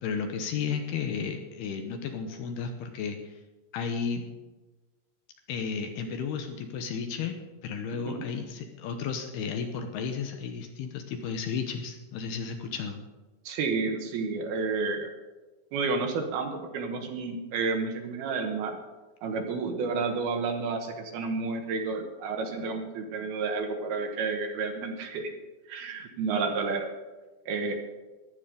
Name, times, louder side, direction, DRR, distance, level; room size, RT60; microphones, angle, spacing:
voice 1, 0.0-3.4 3.7-4.2 5.5-7.4 7.6-13.0, left 6 dB, 75° left, 5 dB, 2.7 m, -33 dB
voice 2, 7.9-8.2 13.5-15.1 15.7-18.8 19.2-25.3 25.7-26.9 27.5-27.8, right 4 dB, 70° right, 4 dB, 2.8 m, -31 dB
15.0 x 11.5 x 5.1 m, 1.2 s
omnidirectional pair, 5.2 m